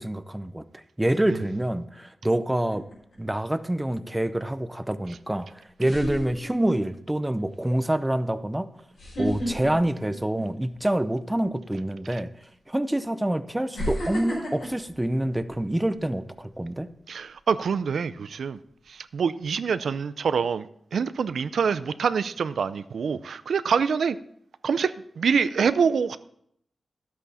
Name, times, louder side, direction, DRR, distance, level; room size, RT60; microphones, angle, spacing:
voice 1, 0.0-2.9 3.2-5.5 5.8-8.7 9.2-12.3 12.7-16.9, right 1 dB, 10° right, 12 dB, 0.6 m, -26 dB
sound 1, 2.7-3.2 5.1-5.2 5.8-6.9 7.4-7.6 8.9-10.8 11.2-11.4 12.4-12.5 13.7-16.0 16.4-16.7, equal, 90° left, 5.3 m, -33 dB
voice 2, 17.1-18.6 18.9-20.7 20.9-24.2 24.6-26.2, right 6 dB, 90° right, 14 dB, 0.4 m, -25 dB
12.0 x 8.3 x 4.2 m, 0.70 s
wide cardioid pair, 100°, 0 cm